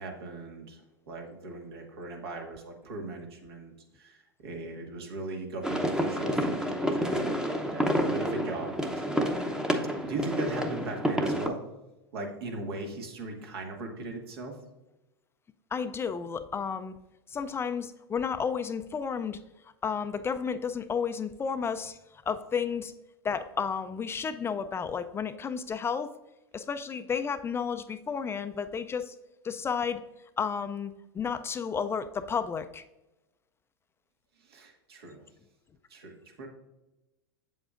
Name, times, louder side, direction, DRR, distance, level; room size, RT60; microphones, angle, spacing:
voice 1, 0.0-7.3 7.7-9.2 10.0-11.6 12.1-14.6 34.4-35.2 35.9-36.5, right 2 dB, 75° right, 2 dB, 1.7 m, -39 dB
sound 1, 5.6-11.5, equal, 5° right, 0.7 m, -29 dB
voice 2, 15.7-16.9 17.3-19.4 19.8-22.0 22.3-22.9 23.2-26.1 26.5-29.1 29.4-30.0 30.4-32.8, left 6 dB, 20° left, 10 dB, 0.4 m, -32 dB
7.7 x 7.3 x 2.5 m, 1.0 s
hypercardioid pair, 105°, 13 cm